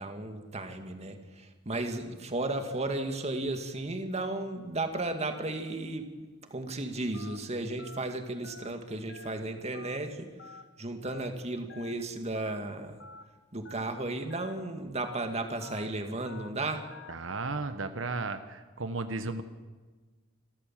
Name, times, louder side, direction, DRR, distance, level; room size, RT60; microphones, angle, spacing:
voice 1, 0.0-6.1 6.4-10.3 10.8-13.0 13.5-16.9, right 2 dB, 35° right, 6 dB, 2.1 m, -34 dB
Telephone, 7.1-7.4 7.8-8.0 8.4-8.7 9.1-9.3 9.7-10.0 10.4-10.6 11.0-11.3 11.7-11.9 12.3-12.6 13.0-13.2 13.6-13.9 14.3-14.5 14.9-15.2 15.6-15.8 16.3-16.5 16.9-17.1, left 4 dB, 70° left, 1.1 m, -48 dB
voice 2, 17.1-19.4, right 3 dB, 90° right, 9 dB, 1.2 m, -34 dB
26.5 x 13.5 x 7.5 m, 1.4 s
head